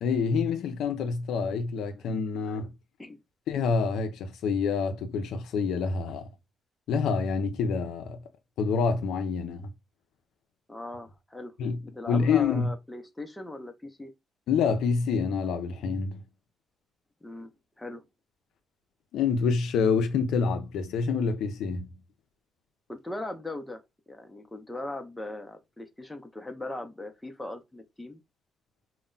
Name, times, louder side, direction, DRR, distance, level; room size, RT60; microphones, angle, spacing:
voice 1, 0.0-2.7 3.5-6.3 6.9-8.2 8.6-9.7 11.6-11.8 12.1-12.7 14.5-16.2 19.1-21.9, left 5 dB, 80° left, 0.4 m, -27 dB
voice 2, 10.7-11.5 11.8-14.1 17.2-17.5 17.8-18.0 22.9-23.8 24.1-28.2, left 1 dB, 10° left, 0.5 m, -39 dB
2.1 x 2.0 x 3.7 m
cardioid pair, 90°, 0 cm